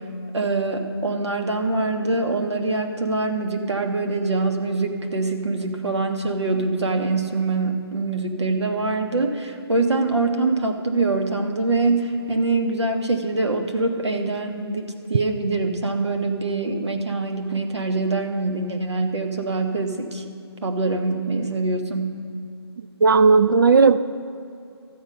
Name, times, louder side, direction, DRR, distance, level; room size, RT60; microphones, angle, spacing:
voice 1, 0.3-20.2 20.6-22.2, right 3 dB, 85° right, 4 dB, 1.4 m, -24 dB
voice 2, 23.0-24.0, right 4 dB, 50° right, 12 dB, 0.4 m, -14 dB
13.0 x 8.1 x 5.3 m, 2.5 s
figure-of-eight pair, 165°, 14 cm